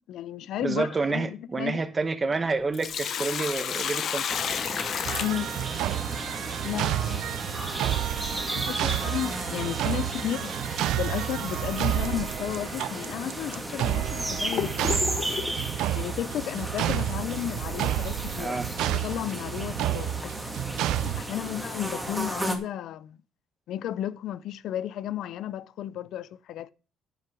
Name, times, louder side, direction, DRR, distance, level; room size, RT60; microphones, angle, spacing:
voice 1, 0.1-1.9 5.2-5.5 6.6-7.3 8.5-10.5 11.0-14.9 15.9-20.3 21.0-23.2 23.7-26.7, left 11 dB, 70° left, 0.5 m, -33 dB
voice 2, 0.6-4.4 18.4-18.7, right 3 dB, 25° right, 1.1 m, -29 dB
Sink (filling or washing), 2.5-6.1 8.5-8.6 10.5-10.7 11.2-11.3 12.1-12.2 12.9-13.0 13.7-15.6, left 8 dB, 50° left, 0.8 m, -32 dB
sound 1, 4.3-22.6, right 1 dB, 5° right, 1.9 m, -35 dB
sound 2, 5.0-21.2, right 13 dB, 90° right, 0.4 m, -30 dB
10.5 x 5.8 x 6.1 m
cardioid pair, 130°, 0 cm